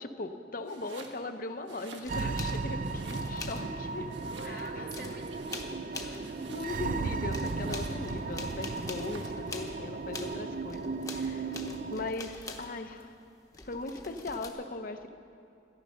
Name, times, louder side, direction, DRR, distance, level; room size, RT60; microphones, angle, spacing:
voice 1, 0.0-4.1 4.4-5.1 6.4-11.6 11.9-13.1 13.6-15.1, left 2 dB, 50° left, 7 dB, 0.8 m, -39 dB
Domestic sounds home sounds, 0.6-1.2 1.6-2.5 2.8-3.6 4.1-4.8 5.1-7.0 7.4-8.1 8.8-9.4, right 3 dB, 85° right, 1.4 m, -50 dB
sound 1, 2.0-4.0 4.3-6.4 6.7-13.0 13.5-14.5, left 3 dB, 20° left, 0.9 m, -45 dB
sound 2, 2.1-12.1, right 3 dB, 50° right, 0.5 m, -35 dB
voice 2, 4.1-6.3, right 2 dB, 65° right, 2 dB, 1.9 m, -47 dB
13.5 x 10.5 x 6.4 m, 2.5 s
head